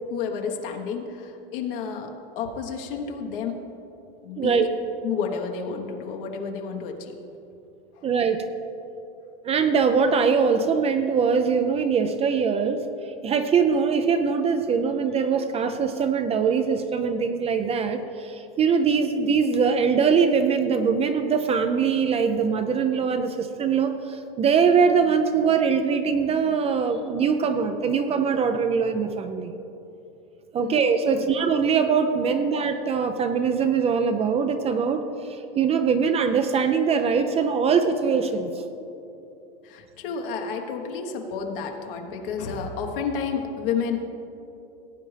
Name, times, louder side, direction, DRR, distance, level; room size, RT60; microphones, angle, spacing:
voice 1, 0.1-3.7 4.2-4.7 5.0-7.2 7.9-8.0 30.6-30.8 31.1-31.3 39.6-44.0, left 6 dB, 65° left, 2 dB, 1.2 m, -31 dB
voice 2, 4.4-4.7 8.0-8.5 9.4-12.9 13.2-29.5 30.5-38.6, right 6 dB, 20° right, 8 dB, 0.4 m, -22 dB
17.5 x 8.4 x 3.3 m, 2.8 s
supercardioid pair, 125°, 29 cm